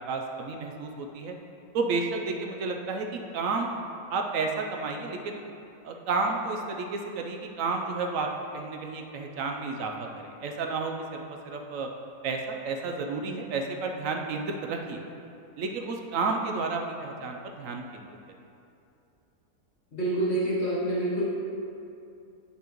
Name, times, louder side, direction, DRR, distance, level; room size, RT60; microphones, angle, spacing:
voice 1, 0.1-1.3 1.7-3.7 4.1-5.4 5.8-8.3 8.5-11.9 12.2-15.0 15.6-18.2, right 4 dB, 70° right, 2 dB, 0.8 m, -31 dB
voice 2, 19.9-21.2, right 1 dB, 45° left, -6 dB, 1.2 m, -27 dB
8.4 x 5.6 x 3.0 m, 2.6 s
omnidirectional pair, 1.7 m